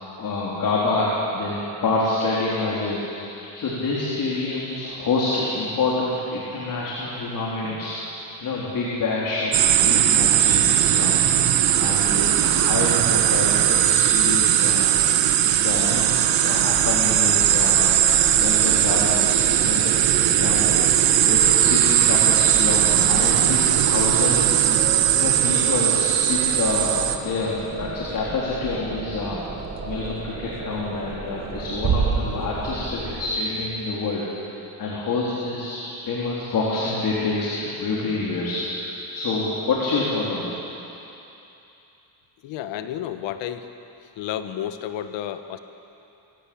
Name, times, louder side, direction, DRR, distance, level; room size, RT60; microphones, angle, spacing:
voice 1, 0.2-8.1 8.4-14.9 15.4-18.0 18.3-20.7 21.2-24.4 25.2-29.4 29.8-40.5, left 3 dB, 50° left, -5 dB, 4.0 m, -27 dB
sound 1, 9.5-27.2, right 11 dB, 85° right, 1.4 m, -19 dB
sound 2, 16.7-33.3, right 4 dB, 30° right, 1.5 m, -35 dB
Bass drum, 31.8-33.3, right 6 dB, 45° right, 1.9 m, -25 dB
voice 2, 42.4-43.7 44.2-45.6, left 10 dB, 90° left, 9 dB, 1.3 m, -31 dB
23.0 x 16.5 x 8.7 m, 2.9 s
cardioid pair, 135°, 43 cm